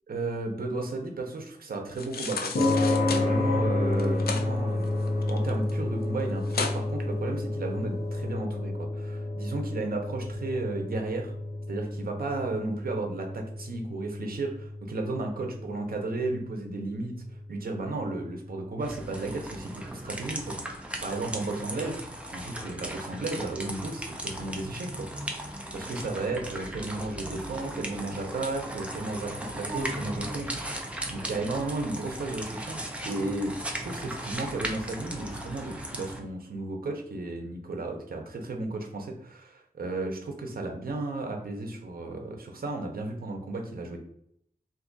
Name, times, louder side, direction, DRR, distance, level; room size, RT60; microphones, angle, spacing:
voice 1, 0.1-5.0 5.3-11.3 11.7-17.2 17.5-22.0 22.3-25.1 25.7-30.8 31.1-44.0, right 2 dB, 65° right, 3 dB, 0.7 m, -34 dB
sound 1, 1.9-3.3 3.9-4.5 4.8-5.7 6.0-6.1 6.5-6.8 7.3-7.4, left 5 dB, 75° left, 0.4 m, -33 dB
sound 2, 2.5-19.1, left 2 dB, 55° left, 0.8 m, -31 dB
sound 3, 18.8-36.2, right 1 dB, 10° right, 0.5 m, -37 dB
2.6 x 2.5 x 3.8 m, 0.71 s
wide cardioid pair, 115°, 16 cm